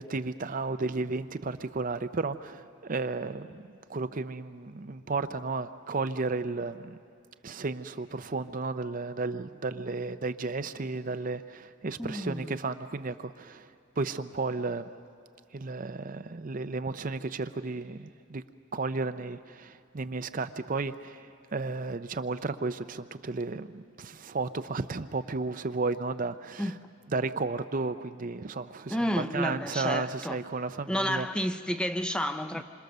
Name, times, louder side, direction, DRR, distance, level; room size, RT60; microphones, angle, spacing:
voice 1, 0.0-7.0 7.4-13.7 14.0-14.9 15.5-18.4 18.7-26.7 27.1-31.3 32.5-32.6, right 3 dB, 40° right, 0.6 m, -33 dB
voice 2, 12.0-12.6 26.6-26.7 28.9-30.4 30.9-32.6, equal, 5° left, 0.6 m, -30 dB
27.5 x 26.5 x 6.7 m
head